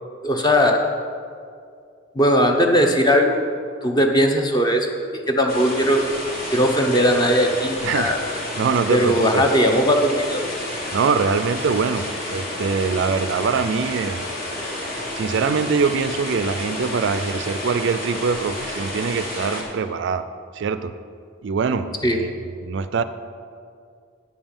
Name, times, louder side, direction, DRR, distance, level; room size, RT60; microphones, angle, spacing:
voice 1, 0.2-0.8 2.2-3.4 3.8-4.9 5.3-6.0 6.5-8.2 8.9-10.4 22.0-22.2, equal, 20° left, 3 dB, 0.7 m, -18 dB
sound 1, 5.5-19.6, left 1 dB, 40° left, 1.7 m, -30 dB
voice 2, 7.8-8.2 8.6-9.4 10.9-14.2 15.2-20.3 20.5-20.9 21.4-22.3 22.6-23.0, right 5 dB, 55° right, 12 dB, 0.3 m, -23 dB
9.4 x 5.4 x 7.1 m, 2.3 s
head